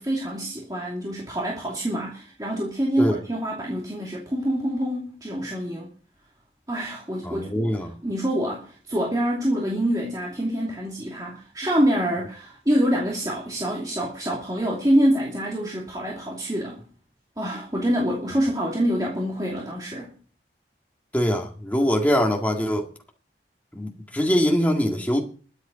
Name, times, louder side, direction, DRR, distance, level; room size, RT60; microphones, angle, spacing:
voice 1, 0.0-5.9 6.7-7.7 8.0-16.8 17.4-20.1, equal, 20° right, 2.6 m, -26 dB
voice 2, 7.2-7.9 21.1-22.8 23.7-25.2, equal, 10° left, 1.9 m, -23 dB
21.5 x 8.2 x 4.0 m
head